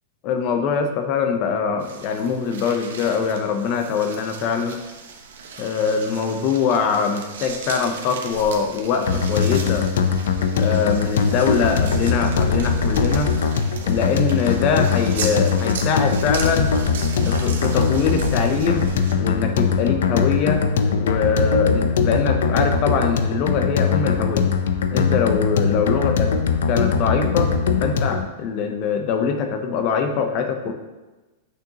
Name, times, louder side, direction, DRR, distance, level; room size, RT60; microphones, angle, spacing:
voice 1, 0.2-4.8 5.6-9.9 10.5-13.3 13.8-16.7 17.2-18.9 19.2-20.6 21.0-24.5 24.9-26.3 26.7-27.5 27.8-30.7, left 6 dB, 30° left, 6 dB, 0.7 m, -23 dB
sound 1, 1.8-19.2, right 4 dB, 80° right, 1.1 m, -35 dB
sound 2, 9.1-28.3, left 5 dB, 80° left, 0.6 m, -21 dB
8.7 x 6.4 x 2.9 m, 1.2 s
supercardioid pair, 175°, 0 cm